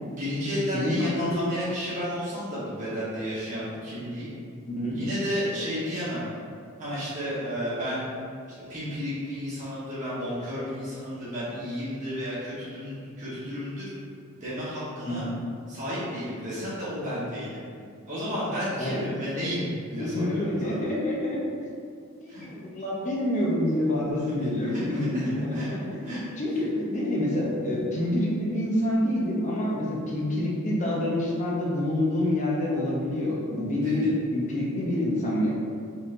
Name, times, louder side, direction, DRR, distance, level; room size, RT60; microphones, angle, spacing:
voice 1, 0.1-4.3 4.9-6.3 6.8-8.1 8.7-13.9 14.4-15.2 15.7-17.6 18.1-20.9 22.3-22.4 24.1-25.7 26.0-26.2 26.5-26.6 33.7-34.1, equal, 35° right, -11 dB, 1.2 m, -32 dB
voice 2, 0.7-1.4 4.7-5.0 15.1-15.3 18.8-19.0 20.0-21.4 22.2-25.6 25.9-35.5, left 1 dB, 35° left, -4 dB, 0.7 m, -27 dB
4.1 x 3.9 x 2.6 m, 2.3 s
head